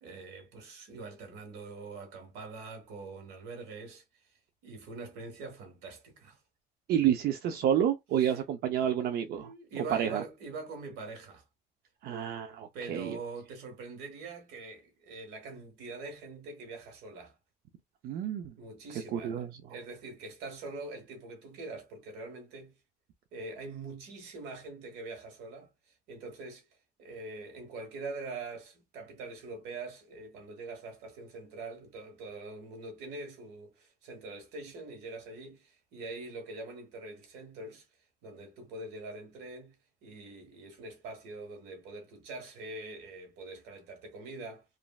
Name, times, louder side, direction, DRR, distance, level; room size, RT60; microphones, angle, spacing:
voice 1, 0.0-4.0 4.6-6.4 8.2-8.4 8.8-8.9 9.3-11.4 12.7-17.4 18.6-22.7 23.3-25.7 26.1-26.7 27.0-37.9 38.2-39.7 40.0-44.6, right 3 dB, 90° right, 1.2 m, -44 dB
voice 2, 6.9-9.5 9.9-10.2 12.0-13.2 18.0-18.5 19.1-19.5, right 9 dB, 65° right, 0.4 m, -29 dB
3.0 x 2.5 x 2.2 m
cardioid pair, 110°, 17 cm